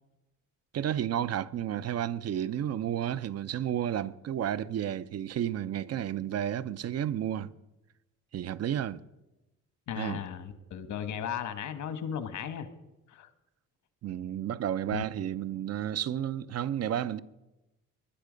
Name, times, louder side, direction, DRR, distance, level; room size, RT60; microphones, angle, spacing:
voice 1, 0.7-7.5 8.3-9.0 10.0-10.2 14.0-17.2, right 10 dB, 55° right, 0.7 m, -32 dB
voice 2, 9.9-12.7 13.1-13.3 14.9-15.0, left 8 dB, 70° left, 1.4 m, -36 dB
20.5 x 10.5 x 5.2 m
cardioid pair, 90°, 30 cm